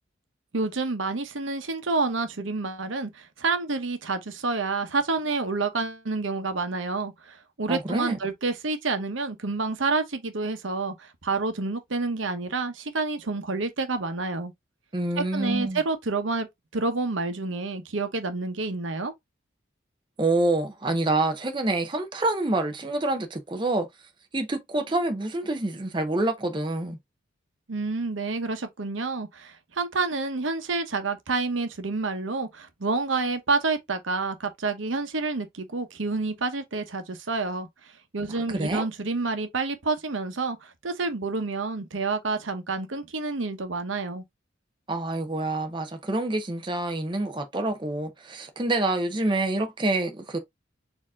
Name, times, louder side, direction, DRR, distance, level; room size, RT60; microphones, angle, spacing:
voice 1, 0.5-14.5 15.2-16.5 16.7-19.1 27.7-37.7 38.1-44.2, right 3 dB, 85° right, 0.9 m, -28 dB
voice 2, 7.7-8.2 14.9-15.8 20.2-23.9 24.3-27.0 38.5-38.8 44.9-50.4, right 2 dB, 25° right, 0.7 m, -27 dB
4.5 x 2.8 x 3.6 m
head